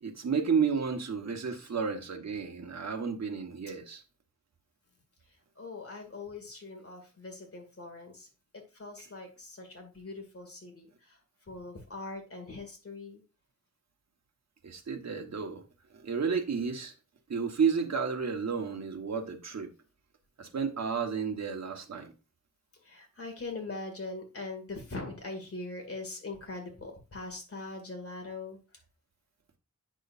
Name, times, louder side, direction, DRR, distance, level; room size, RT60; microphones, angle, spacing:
voice 1, 0.0-4.0 14.6-15.6 15.9-16.9 17.3-19.7 20.4-22.1, right 6 dB, 60° right, 1.3 m, -31 dB
voice 2, 5.6-8.3 8.5-11.2 11.5-13.2 18.5-18.7 22.8-28.6, left 3 dB, 50° left, 2.3 m, -42 dB
8.4 x 6.3 x 2.6 m
wide cardioid pair, 90°, 30 cm